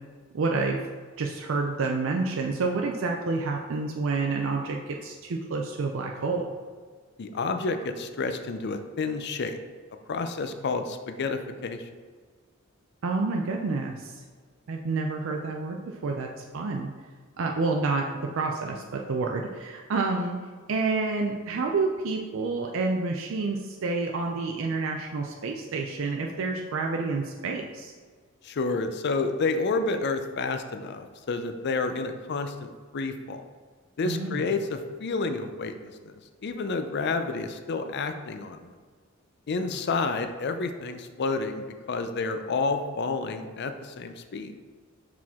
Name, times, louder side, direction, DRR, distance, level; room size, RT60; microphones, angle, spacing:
voice 1, 0.3-0.8 1.2-6.5 13.0-14.2 14.7-16.3 16.5-16.9 17.4-20.4 20.7-27.9 34.0-34.5, right 3 dB, 70° right, 1 dB, 0.5 m, -29 dB
voice 2, 7.2-9.6 10.1-11.9 28.4-33.4 34.0-36.1 36.4-38.7 39.5-44.5, left 3 dB, 55° left, 8 dB, 0.5 m, -30 dB
5.8 x 4.8 x 3.6 m, 1.5 s
head